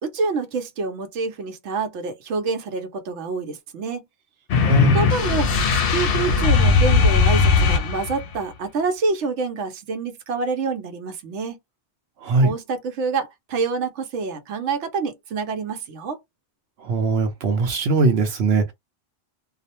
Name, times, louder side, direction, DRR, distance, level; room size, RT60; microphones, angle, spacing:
voice 1, 0.0-4.0 4.9-11.6 12.4-16.2, right 4 dB, 90° right, 1.0 m, -27 dB
sound 1, 4.5-8.3, left 4 dB, 65° left, 0.7 m, -18 dB
voice 2, 4.7-5.0 12.2-12.5 16.8-18.7, right 2 dB, 65° right, 0.8 m, -20 dB
2.4 x 2.0 x 2.8 m
omnidirectional pair, 1.2 m